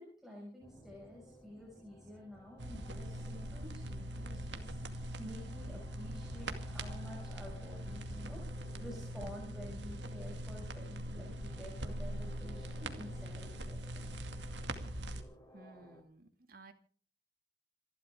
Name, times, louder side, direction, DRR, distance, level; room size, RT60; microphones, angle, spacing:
voice 1, 0.0-14.1, equal, ahead, -3 dB, 6.1 m, -51 dB
sound 1, 0.6-16.0, left 1 dB, 20° left, 3.7 m, -58 dB
sound 2, 2.6-15.2, right 1 dB, 80° right, 2.3 m, -42 dB
voice 2, 15.5-16.7, right 3 dB, 55° right, 6 dB, 2.4 m, -56 dB
28.0 x 12.5 x 3.7 m, 0.43 s
head